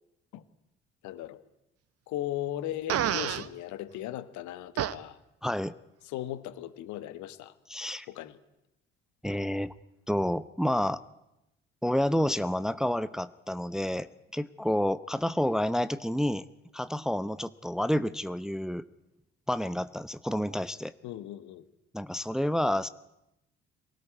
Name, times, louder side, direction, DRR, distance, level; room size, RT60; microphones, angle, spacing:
voice 1, 1.0-1.4 2.1-5.2 6.1-7.5 8.1-8.4 21.0-21.6, left 13 dB, 60° left, 13 dB, 1.6 m, -37 dB
Fart, 2.9-3.5 4.8-4.9, right 10 dB, 45° right, 1.2 m, -28 dB
voice 2, 5.4-5.7 7.7-8.1 9.2-9.7 10.1-11.0 11.8-14.1 14.3-16.5 16.7-18.8 19.5-20.9 21.9-22.9, equal, ahead, 14 dB, 0.9 m, -29 dB
23.5 x 18.0 x 9.5 m, 0.89 s
figure-of-eight pair, 50°, 33 cm